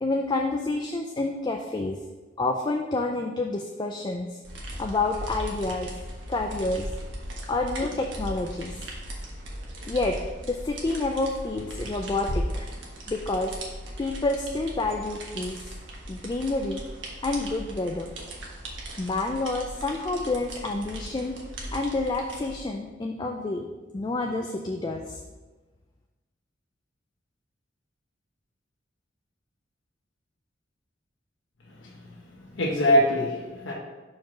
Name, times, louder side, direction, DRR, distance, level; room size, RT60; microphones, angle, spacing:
voice 1, 0.0-2.0 2.4-4.4 4.8-5.9 6.3-6.9 7.5-8.9 9.9-10.2 10.5-12.7 13.1-13.5 14.0-15.6 16.1-16.8 17.2-18.1 19.0-21.4 21.7-23.7 23.9-25.2, left 2 dB, 25° left, 3 dB, 0.4 m, -28 dB
sound 1, 4.4-22.5, right 1 dB, 80° right, 1.3 m, -38 dB
voice 2, 31.7-33.7, equal, 85° left, -3 dB, 1.1 m, -25 dB
4.7 x 4.5 x 5.9 m, 1.3 s
head